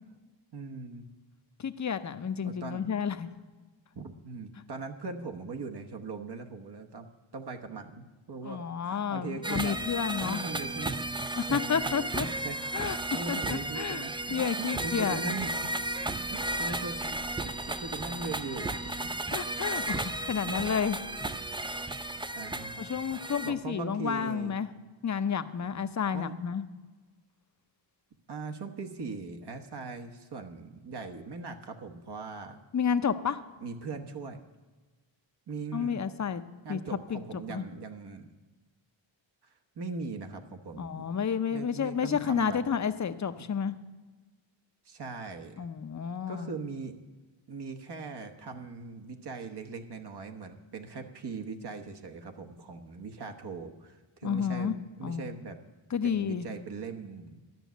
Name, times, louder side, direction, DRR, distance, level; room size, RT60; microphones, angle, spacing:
voice 1, 0.5-1.1 2.4-2.9 3.9-7.1 7.3-9.8 10.1-11.1 11.4-11.8 12.2-15.8 16.2-19.1 20.4-20.6 22.2-24.5 26.1-26.4 28.3-32.6 33.6-34.4 35.5-36.0 36.6-38.3 39.4-41.1 41.5-42.6 43.4-43.5 44.8-45.7 46.3-47.0 47.5-54.7 55.0-55.6 56.0-57.4, right 4 dB, 55° right, 4 dB, 1.1 m, -40 dB
voice 2, 1.6-3.3 8.4-10.4 11.4-12.3 12.7-13.0 13.3-14.0 14.3-15.2 19.3-21.0 22.8-24.7 25.0-26.6 32.7-33.4 35.7-36.4 36.7-36.8 37.1-37.2 37.5-37.6 40.8-43.7 45.6-46.5 54.2-54.7 55.0-55.4 55.9-56.5, left 7 dB, 35° left, 11 dB, 0.7 m, -31 dB
sound 1, 9.4-23.5, right 2 dB, 10° right, 0.4 m, -34 dB
12.0 x 6.2 x 9.1 m, 1.3 s
wide cardioid pair, 115°, 47 cm